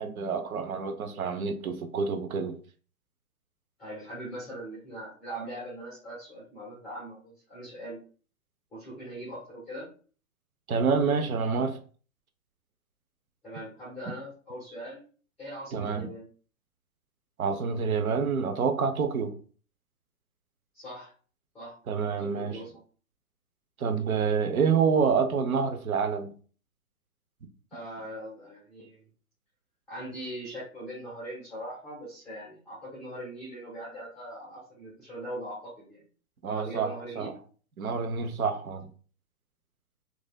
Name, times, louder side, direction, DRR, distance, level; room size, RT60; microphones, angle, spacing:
voice 1, 0.0-2.6 10.7-11.8 15.7-16.1 17.4-19.4 21.9-22.6 23.8-26.3 36.4-37.3 37.8-38.9, right 5 dB, 70° right, 0.7 m, -27 dB
voice 2, 3.8-8.0 8.7-9.9 13.4-15.0 15.4-16.3 20.7-21.1 21.5-21.8 22.2-22.8 27.7-29.1 29.9-36.0 36.5-37.3, right 1 dB, ahead, 0.5 m, -41 dB
3.1 x 2.6 x 2.2 m
hypercardioid pair, 135°, 44 cm